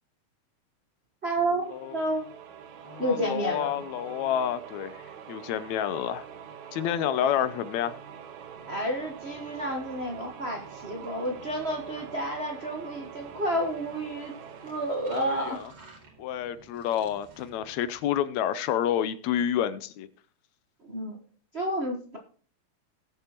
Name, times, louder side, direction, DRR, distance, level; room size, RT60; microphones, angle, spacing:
voice 1, 1.2-1.6 1.9-2.2 3.0-3.7 8.7-14.3 14.6-15.6 20.8-21.2 21.5-22.2, right 1 dB, 85° right, 0.5 m, -30 dB
sound 1, 1.6-16.2, right 8 dB, 70° right, 2.2 m, -45 dB
voice 2, 2.9-5.0 5.3-6.3 6.7-8.0 15.2-15.6 16.2-20.1, left 10 dB, 80° left, 1.8 m, -29 dB
sound 2, 8.5-18.1, right 3 dB, 50° right, 3.3 m, -53 dB
19.0 x 7.2 x 3.0 m
omnidirectional pair, 3.5 m